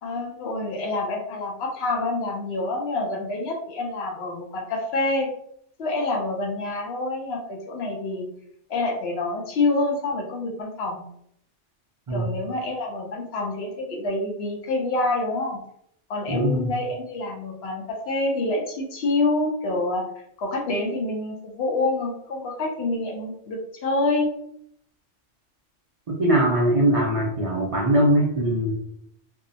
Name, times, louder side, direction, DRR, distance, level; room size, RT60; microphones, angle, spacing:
voice 1, 0.0-5.3 5.8-8.3 8.7-11.0 12.1-15.6 16.1-20.0 20.4-24.3, left 2 dB, 65° left, 1 dB, 0.8 m, -27 dB
voice 2, 16.3-16.7 26.1-28.8, right 1 dB, 70° right, -3 dB, 0.3 m, -21 dB
2.7 x 2.0 x 2.5 m, 0.72 s
omnidirectional pair, 1.2 m